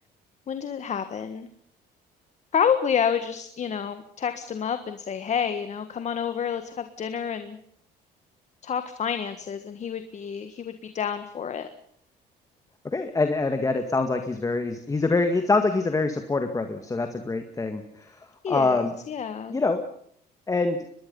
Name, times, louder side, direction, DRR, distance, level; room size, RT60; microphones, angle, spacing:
voice 1, 0.5-1.5 2.5-7.6 8.6-11.7 18.4-19.6, left 7 dB, 45° left, 9 dB, 1.5 m, -29 dB
voice 2, 12.8-18.2 18.5-18.9 19.5-19.8 20.5-20.8, left 3 dB, 20° left, 7 dB, 2.0 m, -25 dB
24.0 x 21.0 x 5.5 m, 0.67 s
cardioid pair, 110°, 17 cm